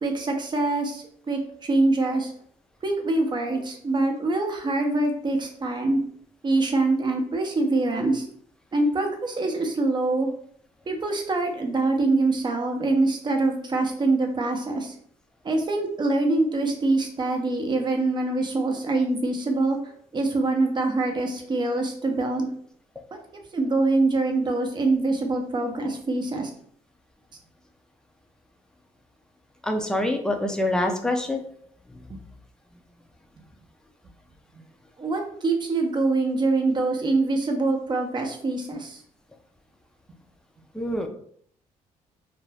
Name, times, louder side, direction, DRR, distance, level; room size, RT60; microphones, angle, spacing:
voice 1, 0.0-2.3 2.8-6.0 6.4-8.3 8.7-10.3 10.9-14.9 15.4-19.8 20.1-22.5 23.1-23.2 23.5-26.5 32.1-32.2 35.0-39.0, right 2 dB, 35° right, 4 dB, 0.7 m, -24 dB
voice 2, 29.6-31.4 31.9-32.0 40.7-41.1, left 1 dB, 5° left, 4 dB, 0.5 m, -25 dB
2.5 x 2.2 x 3.3 m, 0.63 s
cardioid pair, 80°, 14 cm